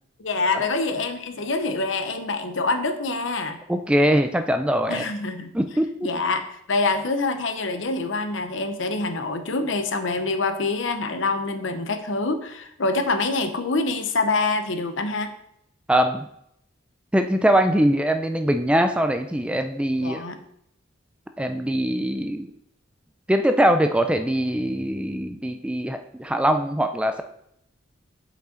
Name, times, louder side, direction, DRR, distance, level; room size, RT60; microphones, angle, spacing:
voice 1, 0.2-3.6 4.9-5.5 6.0-6.4 6.7-15.3 20.0-20.4, left 3 dB, 70° left, 7 dB, 0.8 m, -25 dB
voice 2, 3.7-5.1 5.5-6.1 15.9-16.3 17.1-20.2 21.4-22.5 23.3-27.2, equal, 5° right, 7 dB, 0.3 m, -22 dB
7.5 x 5.5 x 3.8 m, 0.74 s
head